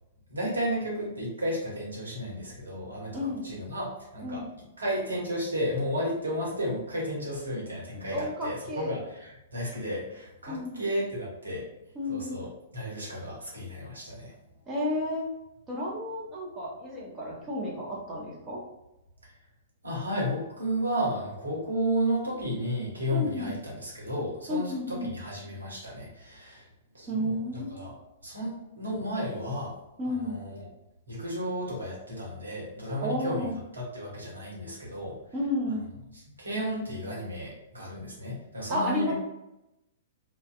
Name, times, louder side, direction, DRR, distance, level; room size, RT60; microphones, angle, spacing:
voice 1, 0.3-4.4 4.8-11.6 12.0-12.5 12.7-14.3 19.8-26.7 26.9-28.0 28.2-29.7 30.0-30.6 31.1-35.1 36.1-39.1, equal, 75° right, -4 dB, 0.9 m, -33 dB
voice 2, 3.1-3.5 4.2-4.5 8.1-8.9 10.5-10.8 11.9-12.4 14.7-15.3 15.7-18.6 23.1-23.5 24.5-25.1 27.1-27.8 30.0-30.4 33.0-33.5 35.3-35.8 38.7-39.1, left 1 dB, 20° right, -4 dB, 0.7 m, -32 dB
2.5 x 2.1 x 2.3 m, 0.91 s
figure-of-eight pair, 110°, 0 cm